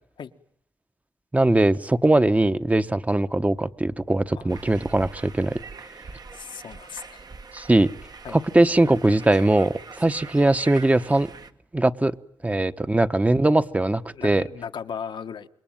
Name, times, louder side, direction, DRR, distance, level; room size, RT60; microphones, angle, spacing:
voice 1, 1.3-5.6 7.5-7.9 8.3-11.3 11.7-12.1 12.4-14.5, right 2 dB, 20° right, 10 dB, 1.1 m, -21 dB
sound 1, 4.5-11.5, right 4 dB, 55° right, 1.4 m, -43 dB
voice 2, 6.3-7.2 8.2-8.4 14.1-15.5, left 7 dB, 80° left, 7 dB, 1.4 m, -36 dB
27.0 x 22.0 x 9.0 m, 0.69 s
cardioid pair, 60°, 8 cm